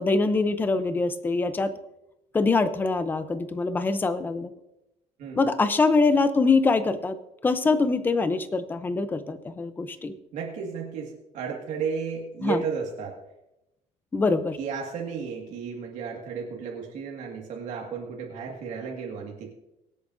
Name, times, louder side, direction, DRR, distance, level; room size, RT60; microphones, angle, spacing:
voice 1, 0.0-1.7 2.3-4.5 5.4-7.2 7.4-10.1 12.4-12.6 14.1-14.6, left 3 dB, 15° left, 11 dB, 0.6 m, -24 dB
voice 2, 10.3-13.2 14.6-19.5, right 6 dB, 60° right, -1 dB, 1.9 m, -33 dB
23.5 x 8.4 x 2.6 m, 0.88 s
cardioid pair, 170°, 14 cm